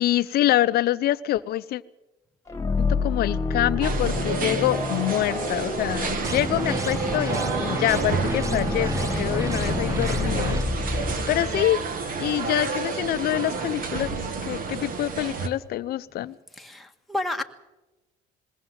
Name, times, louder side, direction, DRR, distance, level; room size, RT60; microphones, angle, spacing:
voice 1, 0.0-1.8 2.8-11.8 12.2-14.1 14.5-16.3, left 14 dB, 65° left, 13 dB, 0.6 m, -26 dB
sound 1, 2.5-12.2, left 4 dB, 15° left, 2.1 m, -29 dB
sound 2, 3.8-15.5, right 4 dB, 55° right, 2.0 m, -30 dB
sound 3, 6.2-10.6, right 3 dB, 20° right, 1.1 m, -30 dB
voice 2, 16.6-17.4, left 1 dB, ahead, 3 dB, 1.5 m, -30 dB
21.5 x 16.5 x 7.9 m, 1.1 s
cardioid pair, 110°, 17 cm